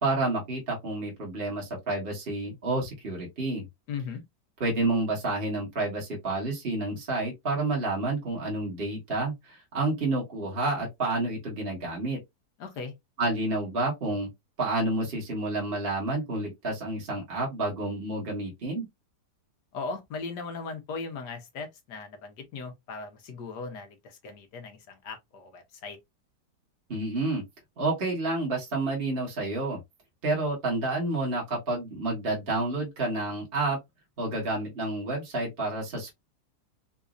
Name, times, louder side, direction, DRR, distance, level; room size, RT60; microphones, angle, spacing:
voice 1, 0.0-3.6 4.6-12.2 13.2-14.3 14.6-18.9 26.9-27.4 27.8-29.8 30.2-33.8 34.2-36.1, right 2 dB, 35° right, 1.5 m, -29 dB
voice 2, 3.9-4.2 12.6-12.9 19.7-26.0, left 4 dB, 80° left, 1.6 m, -38 dB
4.1 x 2.7 x 2.4 m
omnidirectional pair, 1.8 m